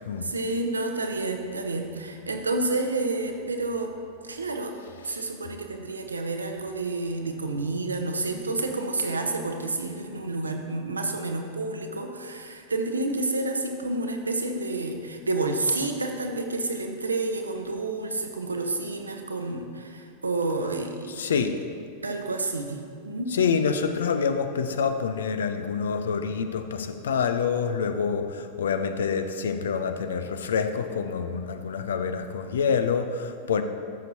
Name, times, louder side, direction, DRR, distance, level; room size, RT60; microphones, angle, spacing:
voice 1, 0.2-3.9 4.2-4.7 5.0-21.5 22.0-23.3, right 2 dB, 75° right, 4 dB, 0.8 m, -29 dB
voice 2, 21.2-21.6 23.3-33.6, left 6 dB, 65° left, 9 dB, 0.5 m, -27 dB
13.0 x 6.7 x 2.8 m, 2.4 s
figure-of-eight pair, 90°, 0 cm